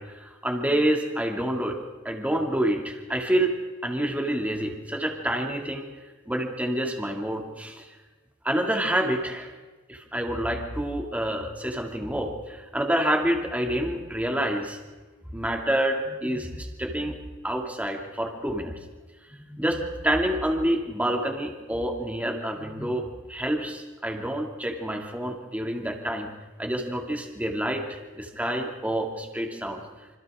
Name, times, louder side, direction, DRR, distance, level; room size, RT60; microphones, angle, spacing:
voice 1, 0.0-1.8 2.0-3.6 3.8-5.8 6.3-7.9 8.4-9.5 9.9-14.8 15.3-17.2 17.4-18.7 19.5-26.3 26.6-29.8, right 1 dB, 5° right, 2 dB, 2.4 m, -28 dB
27.5 x 26.0 x 3.7 m, 1.3 s
head